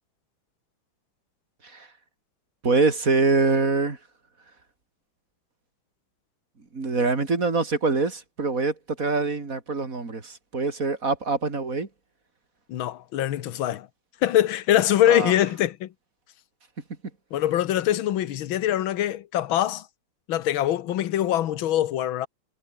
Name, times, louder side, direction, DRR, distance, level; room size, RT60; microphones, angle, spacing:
voice 1, 2.6-4.0 6.7-11.9 15.1-15.3, right 3 dB, 40° right, 3.5 m, -24 dB
voice 2, 12.7-13.9 14.2-15.9 17.3-19.9 20.3-22.3, left 12 dB, 75° left, 1.8 m, -23 dB
omnidirectional pair, 2.3 m